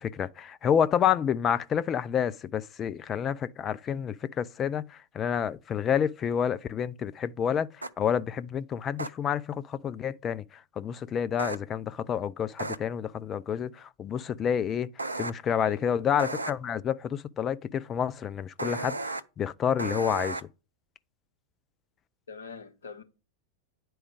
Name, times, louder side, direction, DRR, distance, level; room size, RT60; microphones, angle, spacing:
voice 1, 0.0-7.7 8.0-14.9 15.2-20.4, left 8 dB, 25° left, 0.5 m, -29 dB
sound 1, 7.8-7.9 9.0-9.1 11.4-11.6 12.6-12.8 15.0-15.3 16.2-16.5 18.6-19.2 19.8-20.4, right 2 dB, 80° right, 0.6 m, -33 dB
voice 2, 15.6-16.1 22.3-23.0, left 5 dB, 70° left, 1.6 m, -42 dB
10.0 x 4.6 x 4.8 m
figure-of-eight pair, 90°, 0 cm